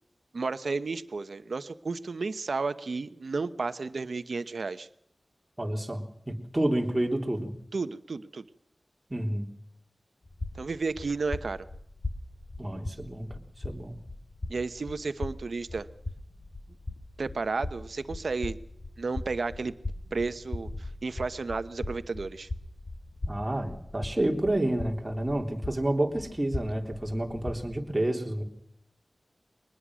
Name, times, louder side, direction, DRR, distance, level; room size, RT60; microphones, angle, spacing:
voice 1, 0.3-4.9 7.7-8.4 10.5-11.7 14.5-15.9 17.2-18.6 19.0-19.7 20.1-22.5, right 4 dB, 75° right, 12 dB, 1.0 m, -32 dB
voice 2, 5.6-7.5 9.1-9.5 12.6-14.0 23.3-28.4, right 1 dB, 20° right, 1 dB, 3.5 m, -29 dB
sound 1, 10.2-27.8, left 2 dB, 50° left, 3.3 m, -40 dB
23.0 x 20.0 x 6.3 m, 0.75 s
wide cardioid pair, 75°, 0 cm